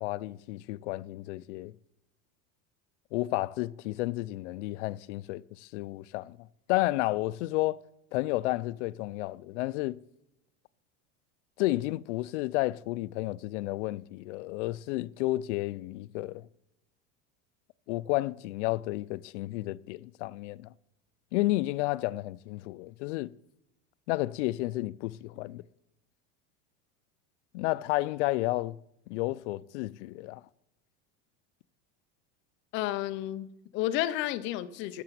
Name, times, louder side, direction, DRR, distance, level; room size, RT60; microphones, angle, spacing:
voice 1, 0.0-1.7 3.1-6.4 6.7-7.8 8.1-10.0 11.6-16.5 17.9-20.7 21.3-23.3 24.1-25.6 27.5-28.8 29.1-30.4, left 18 dB, 85° left, 0.5 m, -31 dB
voice 2, 32.7-35.0, left 14 dB, 35° left, 0.6 m, -32 dB
12.0 x 6.8 x 7.5 m
cardioid pair, 175°, 34 cm